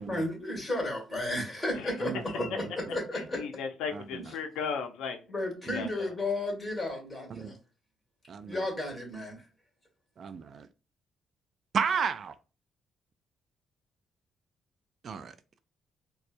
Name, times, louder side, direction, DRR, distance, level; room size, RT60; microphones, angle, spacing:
voice 1, 0.1-3.4 5.3-7.6 8.5-9.4, left 1 dB, 20° left, 2.0 m, -33 dB
voice 2, 2.0-2.7 3.9-4.2 5.7-5.9 7.3-7.5 8.3-8.6 10.2-10.7 11.7-12.3 15.0-15.3, right 6 dB, 55° right, 0.4 m, -33 dB
voice 3, 3.1-5.2 5.7-6.1, left 6 dB, 90° left, 0.6 m, -36 dB
4.1 x 2.3 x 2.6 m
cardioid pair, 90°, 0 cm